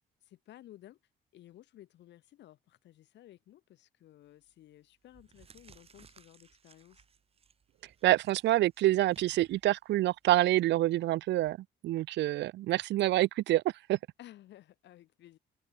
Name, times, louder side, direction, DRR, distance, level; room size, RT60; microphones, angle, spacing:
voice 1, 0.2-1.0 1.3-7.0 14.2-15.4, left 13 dB, 85° left, 6.2 m, -55 dB
sound 1, 4.3-4.5 5.0-11.5, right 6 dB, 35° right, 6.8 m, -62 dB
voice 2, 8.0-11.6 11.8-13.6 13.9-14.0, right 15 dB, 90° right, 0.7 m, -27 dB
cardioid pair, 165°, 18 cm